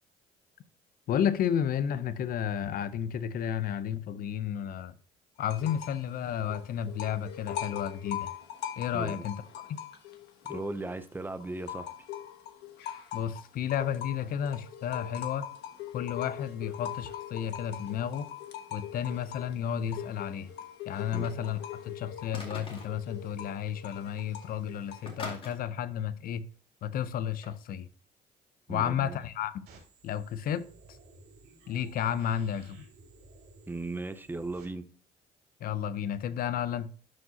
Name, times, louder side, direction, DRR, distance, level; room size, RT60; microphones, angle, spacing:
voice 1, 1.1-4.9 5.4-8.3 8.8-9.4 9.7-9.8 13.1-15.5 15.9-18.3 18.7-20.5 20.9-21.6 21.8-26.4 26.8-27.9 28.7-29.6 30.0-31.0 31.7-32.8 35.6-36.9, left 9 dB, 60° left, 0.7 m, -32 dB
sound 1, 5.4-6.1 6.3-11.0 11.4-25.2, left 10 dB, 85° left, 1.2 m, -41 dB
voice 2, 8.9-9.3 10.4-11.9 21.1-21.3 28.7-29.2 33.7-34.9, right 2 dB, 10° right, 0.6 m, -37 dB
sound 2, 20.9-21.7 22.3-23.0 23.9-24.0 24.2-24.5 25.1-25.6 27.4-27.6, left 2 dB, 30° left, 2.2 m, -43 dB
sound 3, 29.7-34.7, right 3 dB, 75° right, 2.8 m, -56 dB
12.0 x 4.8 x 2.8 m
cardioid pair, 110°, 17 cm